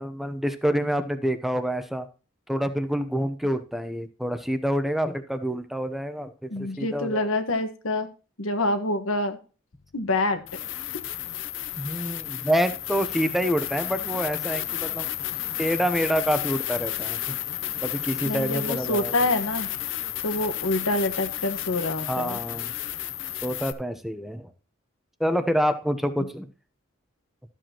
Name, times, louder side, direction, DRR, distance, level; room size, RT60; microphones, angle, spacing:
voice 1, 0.0-2.1 2.5-7.3 11.8-15.1 15.6-17.2 17.8-19.1 22.1-22.7 23.4-24.5 25.2-26.5, equal, ahead, 9 dB, 0.8 m, -27 dB
voice 2, 6.5-8.1 8.4-9.4 9.9-10.4 18.2-19.7 20.2-22.4, left 2 dB, 85° left, 8 dB, 1.4 m, -26 dB
sound 1, 9.7-9.8 10.4-23.7, left 12 dB, 65° left, 0.7 m, -32 dB
13.0 x 7.6 x 3.0 m, 0.34 s
head